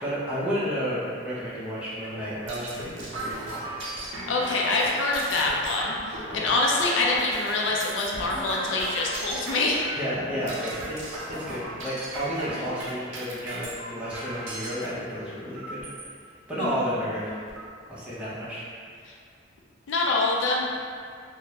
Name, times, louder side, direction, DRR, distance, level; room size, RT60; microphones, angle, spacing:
voice 1, 0.0-3.6 6.3-6.5 10.0-15.8 16.5-17.4 17.9-18.7, equal, 5° right, -11 dB, 0.7 m, -32 dB
sound 1, 2.0-14.9 15.6-16.1 16.7-16.8 17.1-17.7, right 1 dB, 80° right, 0.6 m, -36 dB
voice 2, 4.3-9.8 16.6-16.7 19.9-20.8, left 2 dB, 70° left, -2 dB, 0.4 m, -25 dB
3.4 x 2.0 x 2.8 m, 2.3 s
head